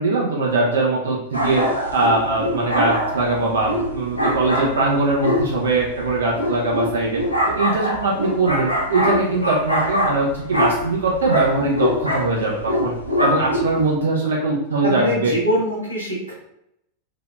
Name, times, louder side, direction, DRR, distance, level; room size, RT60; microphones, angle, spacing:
voice 1, 0.0-1.6 1.9-7.2 7.5-12.9 13.2-15.3, right 3 dB, 65° right, -3 dB, 0.6 m, -21 dB
sound 1, 1.3-13.9, left 1 dB, 90° left, 0.5 m, -23 dB
voice 2, 13.3-13.7 14.8-16.3, equal, 85° right, -6 dB, 1.1 m, -24 dB
3.4 x 2.4 x 2.3 m, 0.78 s
figure-of-eight pair, 90°, 0 cm